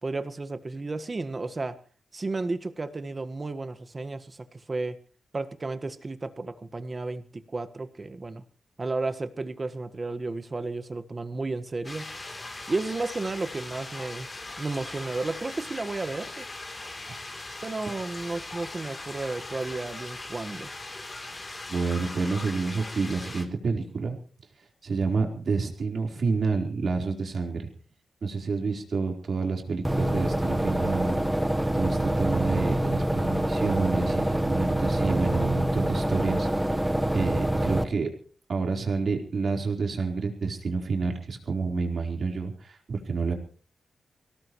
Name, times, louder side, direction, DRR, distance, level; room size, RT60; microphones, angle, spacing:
voice 1, 0.0-1.8 2.1-5.0 5.3-7.2 7.5-8.4 8.8-12.1 12.7-14.3 14.6-16.5 17.6-20.7, right 3 dB, 30° right, 11 dB, 1.5 m, -33 dB
sound 1, 11.8-23.4, left 2 dB, 30° left, 3.3 m, -40 dB
voice 2, 21.7-24.2 24.8-27.7 28.2-31.2 31.7-36.8 37.1-38.1 38.5-43.3, right 4 dB, 55° right, 2 dB, 4.2 m, -29 dB
sound 2, 29.8-37.8, right 1 dB, 5° right, 1.2 m, -26 dB
24.5 x 18.0 x 3.2 m, 0.40 s
wide cardioid pair, 105°, 0 cm